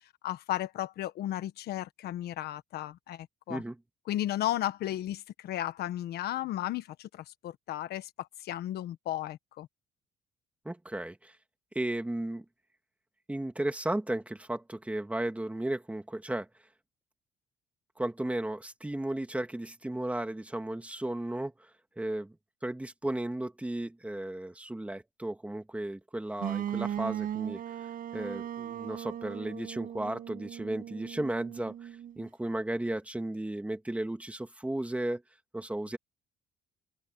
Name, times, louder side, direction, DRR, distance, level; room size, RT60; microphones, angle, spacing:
voice 1, 0.2-3.6 4.1-9.7, left 13 dB, 70° left, 1.4 m, -34 dB
voice 2, 10.6-11.3 11.7-12.5 13.3-16.5 18.0-21.7 22.0-22.4 22.6-27.6 28.1-35.2 35.5-36.0, right 1 dB, 10° right, 2.4 m, -34 dB
sound 1, 26.4-32.3, right 10 dB, 55° right, 7.3 m, -38 dB
cardioid pair, 110°, 17 cm